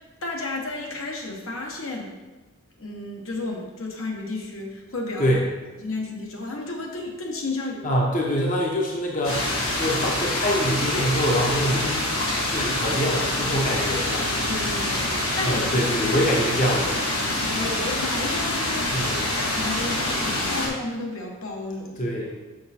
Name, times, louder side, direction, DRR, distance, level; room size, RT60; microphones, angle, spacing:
voice 1, 0.2-2.1 2.8-5.3 5.8-8.0 12.6-12.9 14.5-15.1 15.4-15.9 17.5-19.0 19.4-22.1, left 2 dB, 70° left, 0 dB, 1.2 m, -32 dB
voice 2, 7.8-12.0 12.5-14.2 15.4-17.1 18.9-19.3 22.0-22.3, equal, 35° left, -2 dB, 0.8 m, -25 dB
sound 1, 9.2-20.7, left 1 dB, 85° left, 2.1 m, -26 dB
6.4 x 6.0 x 4.3 m, 1.2 s
head